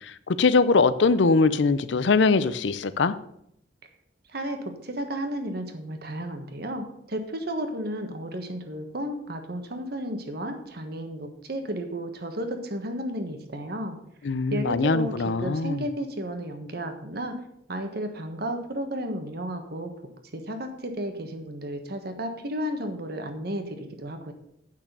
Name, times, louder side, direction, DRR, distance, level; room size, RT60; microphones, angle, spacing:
voice 1, 0.4-3.1 14.2-15.8, left 4 dB, 70° left, 0.5 m, -21 dB
voice 2, 4.3-14.0 14.5-17.4 17.7-19.9 20.3-24.3, right 1 dB, 55° right, 1.3 m, -33 dB
8.7 x 6.0 x 6.7 m
head